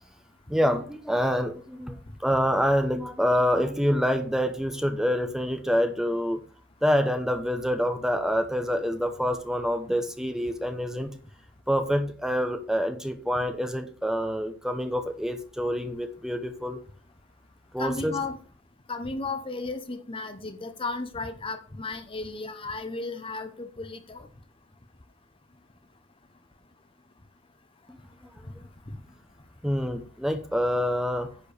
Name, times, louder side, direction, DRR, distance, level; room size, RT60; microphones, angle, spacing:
voice 1, 0.5-2.0 2.2-6.4 6.8-11.1 11.7-16.8 17.7-18.1 29.6-31.3, equal, 5° right, 0.9 m, -26 dB
voice 2, 17.8-18.4 18.9-24.3, left 3 dB, 25° left, 0.9 m, -34 dB
10.5 x 4.5 x 6.7 m
head